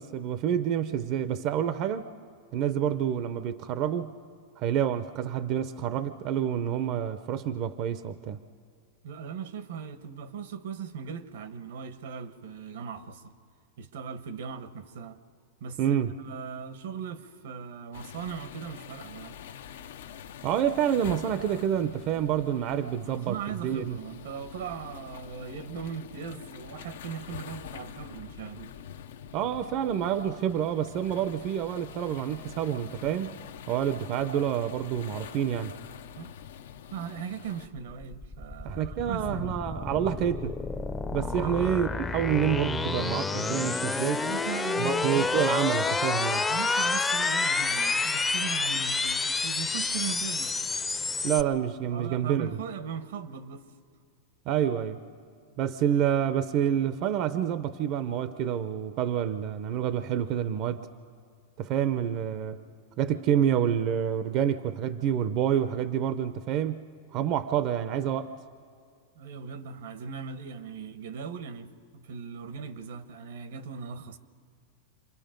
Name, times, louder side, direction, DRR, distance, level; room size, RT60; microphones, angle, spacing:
voice 1, 0.0-2.1 2.5-4.1 4.6-8.4 15.8-16.1 20.4-24.0 29.3-35.7 38.6-40.6 41.1-44.3 44.7-46.4 51.2-52.6 54.5-55.0 55.6-60.9 61.6-62.6 63.0-66.8 67.1-68.3, right 9 dB, 45° right, 0.6 m, -28 dB
voice 2, 9.0-13.3 13.8-15.2 15.6-19.4 23.0-28.7 36.2-36.3 36.9-39.6 41.2-41.7 44.1-45.5 46.5-50.6 51.9-53.7 69.1-74.2, right 7 dB, 80° right, 1.2 m, -39 dB
sound 1, 17.9-37.7, left 8 dB, 80° left, 0.8 m, -45 dB
sound 2, 37.7-51.4, left 4 dB, 10° left, 0.6 m, -29 dB
27.5 x 22.5 x 5.2 m
supercardioid pair, 135°, 0 cm